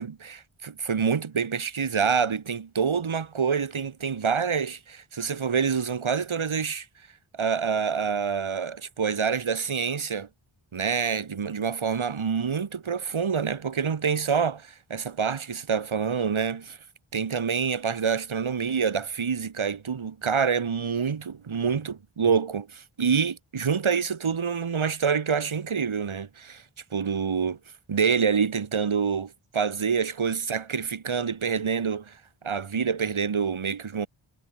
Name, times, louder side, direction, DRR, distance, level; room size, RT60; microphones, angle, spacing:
voice 1, 0.0-6.9 7.3-10.3 10.7-16.8 17.1-26.6 26.9-27.6 27.9-32.2 32.4-34.1, right 6 dB, 70° right, 2.0 m, -27 dB
wide cardioid pair, 60°, 49 cm